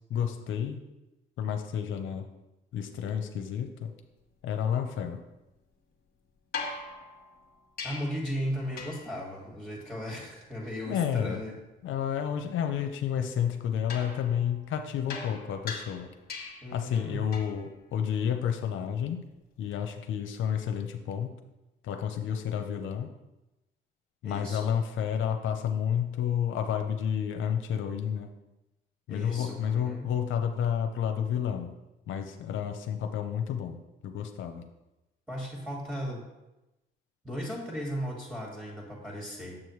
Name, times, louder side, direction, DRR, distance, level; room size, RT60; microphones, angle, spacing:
voice 1, 0.1-0.8 1.4-2.3 2.7-3.9 4.4-5.2 10.9-11.4 11.8-16.1 16.7-19.2 19.6-21.3 21.8-23.1 24.2-28.3 29.1-31.7 32.1-33.8 34.0-34.7, left 8 dB, 75° left, 6 dB, 0.7 m, -30 dB
sound 1, 6.5-8.3 8.8-9.2 13.9-16.8 17.3-17.7 19.7-19.8, left 4 dB, 50° left, 1.3 m, -40 dB
voice 2, 7.8-11.5 16.6-17.2 24.2-24.7 29.1-30.1 35.3-36.3 37.2-39.6, equal, 10° right, -3 dB, 2.2 m, -36 dB
7.4 x 6.3 x 3.2 m, 0.98 s
cardioid pair, 90°, 20 cm